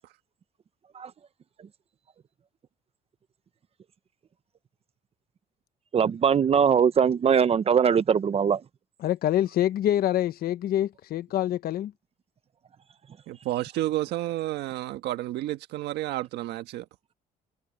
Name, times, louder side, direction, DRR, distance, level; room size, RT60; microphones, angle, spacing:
voice 1, 5.9-8.6, right 7 dB, 35° right, 0.8 m, -21 dB
voice 2, 9.0-11.9, left 12 dB, 65° left, 1.0 m, -26 dB
voice 3, 13.3-16.8, right 15 dB, 80° right, 1.5 m, -31 dB
cardioid pair, 110°, 17 cm